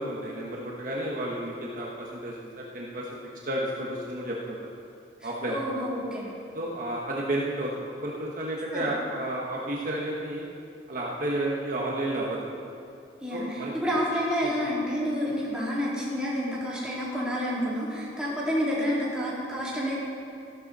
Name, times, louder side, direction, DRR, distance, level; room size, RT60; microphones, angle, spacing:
voice 1, 0.0-3.1 3.4-4.6 5.2-5.6 6.5-10.4 10.9-12.4 13.3-13.7 14.4-14.6, right 1 dB, 45° right, -4 dB, 1.3 m, -31 dB
voice 2, 5.2-6.3 8.7-8.9 13.2-19.9, equal, 5° right, -8 dB, 3.2 m, -29 dB
14.5 x 12.0 x 4.2 m, 2.5 s
head